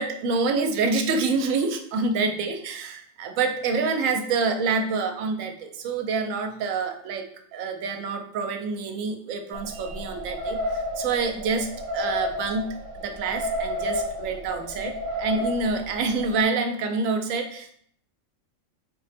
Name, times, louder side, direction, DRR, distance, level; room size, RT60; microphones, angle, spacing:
voice 1, 0.0-17.8, right 4 dB, 80° right, 6 dB, 0.9 m, -27 dB
sound 1, 9.5-16.4, equal, 50° right, 0.6 m, -31 dB
3.9 x 2.1 x 4.1 m, 0.64 s
omnidirectional pair, 1.4 m